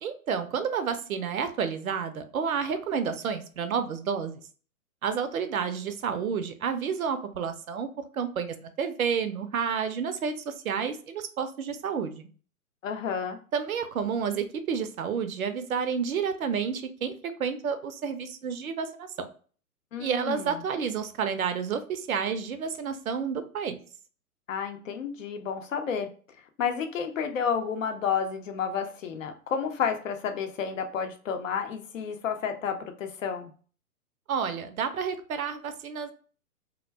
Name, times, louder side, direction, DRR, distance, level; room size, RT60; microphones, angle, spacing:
voice 1, 0.0-4.4 5.0-7.9 8.1-12.3 13.5-17.1 17.4-19.1 20.0-23.8 34.3-36.1, right 6 dB, 70° right, 9 dB, 0.6 m, -30 dB
voice 2, 12.8-13.4 19.9-20.6 24.5-26.1 26.6-33.5, left 7 dB, 60° left, 6 dB, 0.6 m, -31 dB
2.3 x 2.1 x 3.2 m, 0.41 s
figure-of-eight pair, 125°, 45 cm